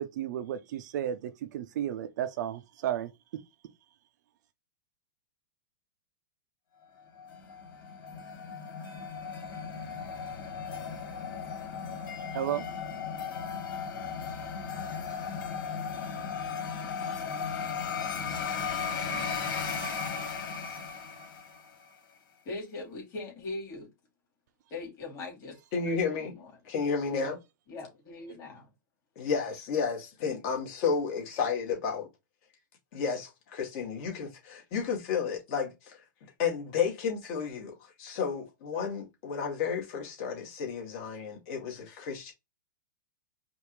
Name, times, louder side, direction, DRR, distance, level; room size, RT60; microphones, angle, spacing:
voice 1, 0.0-3.4 12.3-12.6, right 10 dB, 60° right, 0.6 m, -33 dB
sound 1, 7.2-21.8, left 6 dB, 70° left, 2.1 m, -36 dB
voice 2, 22.4-23.9 24.7-25.6 26.1-26.5 27.7-28.7, left 3 dB, 25° left, 2.6 m, -40 dB
voice 3, 25.7-26.3 26.6-27.4 29.2-32.1 32.9-36.0 36.4-42.3, left 6 dB, 45° left, 2.2 m, -32 dB
5.1 x 2.6 x 3.2 m
hypercardioid pair, 145°, 11 cm